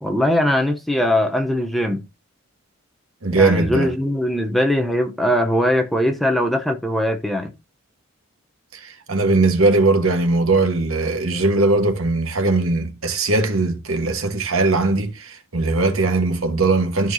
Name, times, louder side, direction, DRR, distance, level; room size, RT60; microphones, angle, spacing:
voice 1, 0.0-2.0 3.3-7.5, left 1 dB, ahead, 0.8 m, -20 dB
voice 2, 3.2-3.9 8.7-17.1, right 3 dB, 75° right, 1.5 m, -19 dB
13.5 x 4.5 x 2.7 m
head